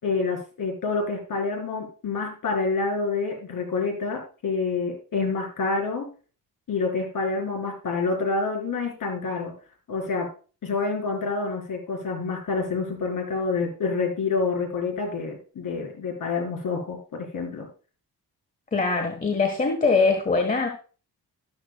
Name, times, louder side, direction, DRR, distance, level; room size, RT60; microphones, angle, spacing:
voice 1, 0.0-6.1 6.7-9.5 9.9-10.3 10.6-17.7, left 4 dB, 60° left, 2 dB, 4.1 m, -27 dB
voice 2, 18.7-20.7, left 4 dB, 20° left, 5 dB, 1.2 m, -22 dB
13.0 x 12.5 x 2.2 m, 0.37 s
wide cardioid pair, 160°, 38 cm